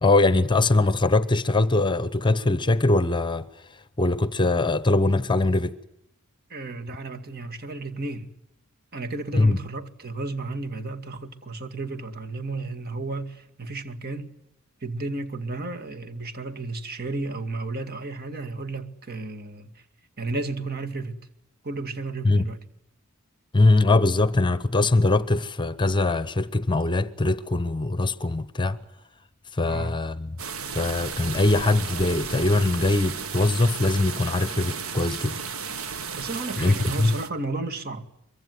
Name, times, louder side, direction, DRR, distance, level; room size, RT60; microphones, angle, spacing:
voice 1, 0.0-3.5 4.0-5.8 9.3-9.6 22.2-22.5 23.5-28.8 29.5-30.4 30.7-35.4 36.6-37.2, left 2 dB, 20° left, 0.9 m, -22 dB
voice 2, 6.5-8.3 8.9-14.3 14.8-19.7 20.2-21.1 21.6-22.6 29.6-29.9 36.1-38.1, right 3 dB, 45° right, 2.2 m, -33 dB
sound 1, 30.4-37.3, right 5 dB, 80° right, 2.0 m, -34 dB
24.0 x 23.0 x 9.4 m
head